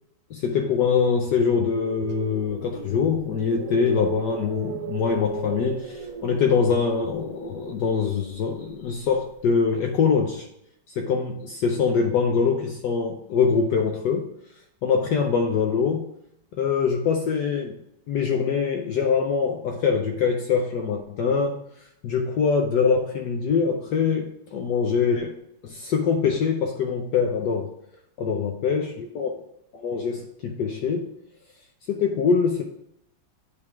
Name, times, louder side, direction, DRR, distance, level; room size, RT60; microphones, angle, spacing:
voice 1, 0.3-10.5 11.0-14.3 14.8-16.1 16.6-17.8 18.1-21.6 22.0-25.3 25.6-27.7 28.2-29.4 29.7-31.1 31.9-32.6, left 5 dB, 70° left, 3 dB, 1.1 m, -23 dB
sound 1, 1.5-9.6, right 7 dB, 80° right, 0.8 m, -37 dB
8.5 x 3.4 x 4.5 m, 0.76 s
omnidirectional pair, 2.2 m